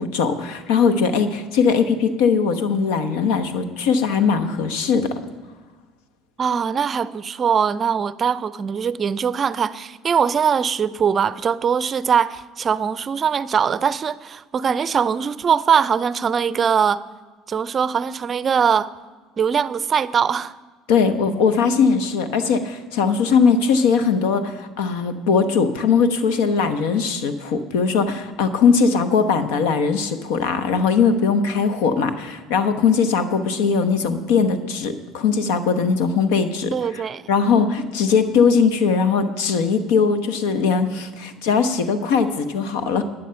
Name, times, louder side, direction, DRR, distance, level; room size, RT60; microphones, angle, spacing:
voice 1, 0.0-5.1 20.9-37.0 37.3-43.0, left 5 dB, 80° left, 0.9 m, -20 dB
voice 2, 6.4-17.0 17.5-18.9 19.4-20.5 36.7-37.2, right 7 dB, 40° right, 0.4 m, -21 dB
11.5 x 9.2 x 5.7 m
supercardioid pair, 85°, 0 cm